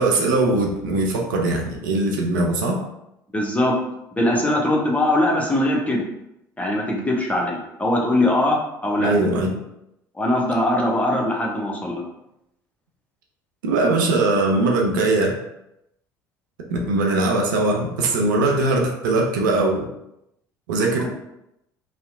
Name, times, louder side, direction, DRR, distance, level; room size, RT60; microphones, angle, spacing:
voice 1, 0.0-2.8 9.0-9.6 13.6-15.4 16.7-19.9 20.7-21.1, right 2 dB, 75° right, 1 dB, 0.4 m, -20 dB
voice 2, 3.3-3.7 4.2-6.1 6.6-9.1 10.2-12.0, left 1 dB, 15° left, -2 dB, 0.7 m, -21 dB
2.7 x 2.1 x 2.4 m, 0.83 s
figure-of-eight pair, 60°, 11 cm